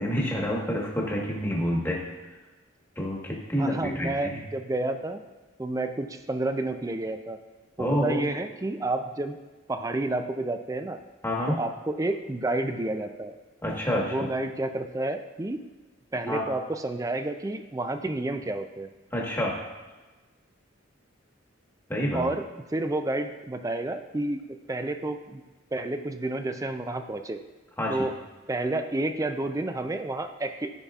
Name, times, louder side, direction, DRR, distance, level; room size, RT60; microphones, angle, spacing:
voice 1, 0.0-2.0 3.0-4.4 7.8-8.3 11.2-11.6 13.6-14.3 16.3-16.4 19.1-19.6 21.9-22.3 27.8-28.0, equal, 10° left, -2 dB, 1.3 m, -28 dB
voice 2, 3.6-5.2 5.6-7.4 7.8-9.4 9.7-11.0 11.5-13.4 14.0-15.6 16.1-18.9 22.1-24.4 24.7-25.4 25.7-27.4 27.9-28.2 28.5-30.7, right 2 dB, 15° right, 8 dB, 0.4 m, -30 dB
13.5 x 5.6 x 2.4 m, 1.2 s
head